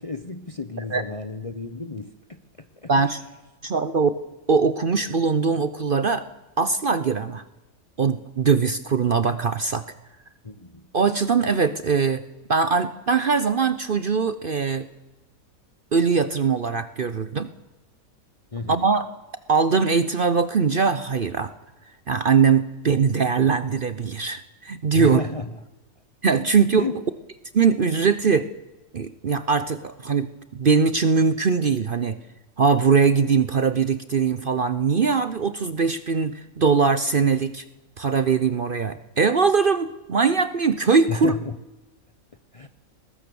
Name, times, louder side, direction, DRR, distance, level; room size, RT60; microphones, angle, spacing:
voice 1, 0.0-3.1 10.4-10.8 18.5-18.9 24.9-25.5 26.8-27.0 41.1-41.6 42.5-42.7, left 3 dB, 30° left, 0.7 m, -32 dB
voice 2, 2.9-3.2 3.6-4.1 4.5-6.3 6.6-7.4 8.0-9.8 10.9-12.2 12.5-14.9 15.9-17.5 18.7-19.1 19.5-21.5 22.1-25.2 26.2-26.8 27.5-28.5 28.9-30.3 30.5-32.2 32.6-37.6 38.0-41.3, right 5 dB, 45° right, 0.8 m, -21 dB
20.5 x 18.0 x 7.0 m
omnidirectional pair, 1.5 m